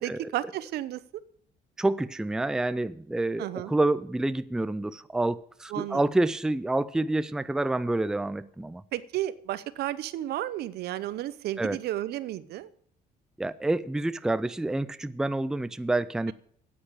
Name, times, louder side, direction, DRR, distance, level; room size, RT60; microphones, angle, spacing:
voice 1, 0.0-1.0 3.4-3.7 5.7-6.0 8.9-12.7, right 13 dB, 70° right, 0.7 m, -32 dB
voice 2, 1.8-8.8 11.6-11.8 13.4-16.3, right 2 dB, 5° right, 0.4 m, -28 dB
9.5 x 9.0 x 8.7 m
cardioid pair, 110°, 17 cm